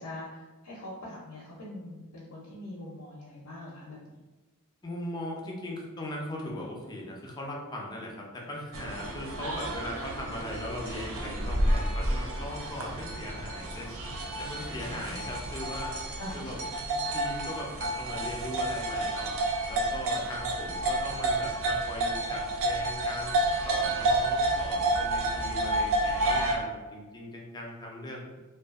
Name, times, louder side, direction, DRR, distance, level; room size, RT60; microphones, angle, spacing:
voice 1, 0.0-4.2 8.4-8.5 14.9-15.3 16.2-16.5, left 1 dB, 75° left, -5 dB, 0.5 m, -43 dB
voice 2, 4.8-13.9 14.4-15.9 16.3-16.6 17.1-19.4 19.7-28.3, left 1 dB, 20° left, -2 dB, 0.4 m, -39 dB
sound 1, 8.7-26.6, right 1 dB, 60° right, 0.4 m, -30 dB
2.6 x 2.3 x 2.3 m, 1.2 s
head